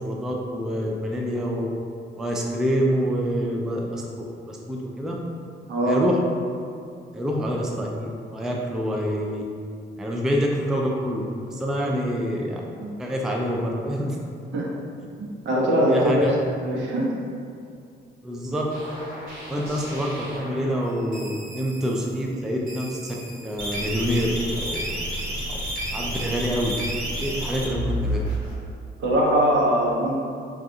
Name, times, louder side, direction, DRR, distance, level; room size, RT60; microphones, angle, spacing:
voice 1, 0.0-1.7 2.2-5.1 5.9-6.2 7.1-9.4 10.0-12.6 13.0-14.2 15.9-16.3 18.2-18.7 19.5-23.2 23.4-24.9 25.5-25.6 25.9-26.8 27.2-28.2, equal, ahead, -1 dB, 0.3 m, -26 dB
voice 2, 5.7-6.0 12.8-12.9 14.5-14.7 15.4-16.2 16.6-17.1 29.0-30.2, equal, 65° right, -3 dB, 0.7 m, -21 dB
sound 1, 18.7-20.8 21.1-22.1 22.7-28.5, equal, 50° right, 1.2 m, -31 dB
2.6 x 2.4 x 3.6 m, 2.4 s
cardioid pair, 90°, 20 cm